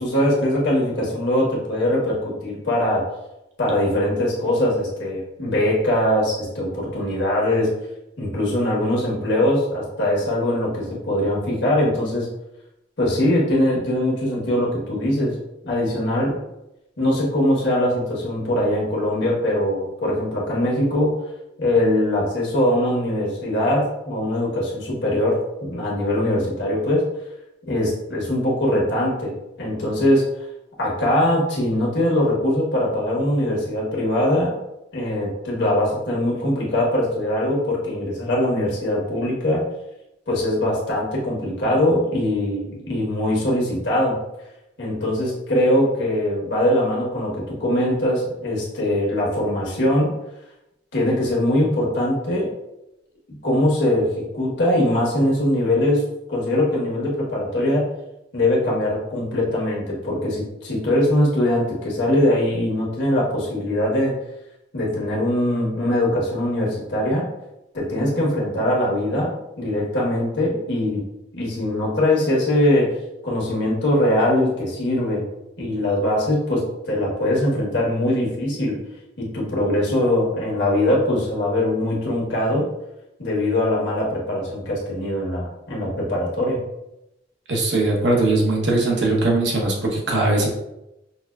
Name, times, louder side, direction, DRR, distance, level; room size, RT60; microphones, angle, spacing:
voice 1, 0.0-3.0 3.6-7.7 8.2-12.3 13.0-15.3 15.6-16.4 17.0-21.1 21.6-27.0 27.7-29.3 29.6-30.2 30.8-34.5 34.9-39.6 40.3-44.1 44.8-50.1 50.9-52.5 53.4-56.0 56.3-57.8 58.3-64.1 64.7-67.3 67.7-71.0 71.3-72.9 73.2-75.2 75.6-78.8 79.2-82.7 83.2-86.6, left 1 dB, 75° left, -4 dB, 1.2 m, -21 dB
voice 2, 87.5-90.5, right 2 dB, 75° right, -2 dB, 0.9 m, -20 dB
5.5 x 2.2 x 2.3 m, 0.90 s
head